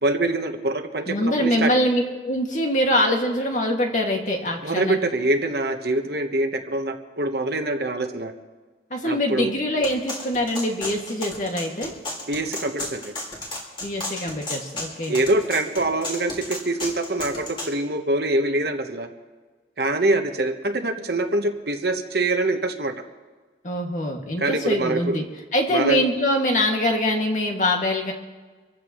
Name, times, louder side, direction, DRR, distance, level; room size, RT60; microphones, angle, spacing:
voice 1, 0.0-1.7 4.6-8.3 9.0-9.5 12.3-13.1 15.1-19.1 19.8-22.9 24.4-25.2 25.7-26.0, right 2 dB, 60° right, 5 dB, 1.2 m, -24 dB
voice 2, 1.1-5.0 8.9-11.9 13.8-15.2 23.6-25.2 25.5-28.1, left 1 dB, 45° left, 1 dB, 2.2 m, -23 dB
sound 1, 9.8-17.7, left 1 dB, 30° left, 3.7 m, -33 dB
26.5 x 15.0 x 3.2 m, 1.3 s
head